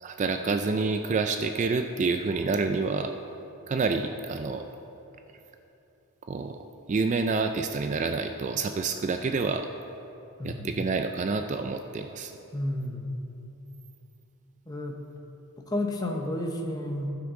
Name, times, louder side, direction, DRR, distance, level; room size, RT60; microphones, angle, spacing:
voice 1, 0.0-3.1 3.7-4.6 6.3-6.6 6.9-9.7 10.4-12.3, right 4 dB, 35° right, 7 dB, 0.3 m, -28 dB
voice 2, 10.4-10.8 12.5-13.1 14.7-15.0 15.6-17.1, left 1 dB, 15° left, 2 dB, 0.8 m, -31 dB
15.5 x 5.9 x 3.7 m, 2.9 s
head